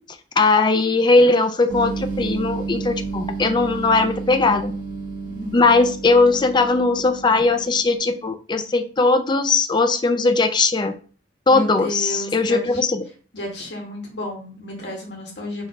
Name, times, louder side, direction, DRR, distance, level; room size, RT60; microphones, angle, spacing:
voice 1, 0.4-4.7 5.5-10.9 11.5-13.0, left 3 dB, 25° left, 7 dB, 0.4 m, -19 dB
sound 1, 1.7-8.1, right 4 dB, 85° right, 1.4 m, -31 dB
voice 2, 11.5-12.8 13.3-15.7, left 1 dB, 70° left, -1 dB, 1.6 m, -32 dB
3.9 x 2.7 x 4.7 m, 0.39 s
head